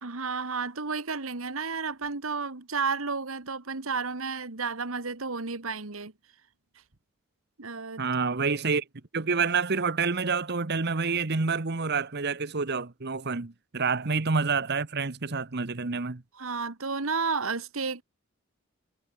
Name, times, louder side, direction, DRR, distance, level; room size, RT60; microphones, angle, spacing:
voice 1, 0.0-6.1 7.6-8.0 16.3-18.0, right 4 dB, 70° right, 1.8 m, -32 dB
voice 2, 8.0-8.8 9.1-16.2, right 4 dB, 50° right, 1.1 m, -28 dB
head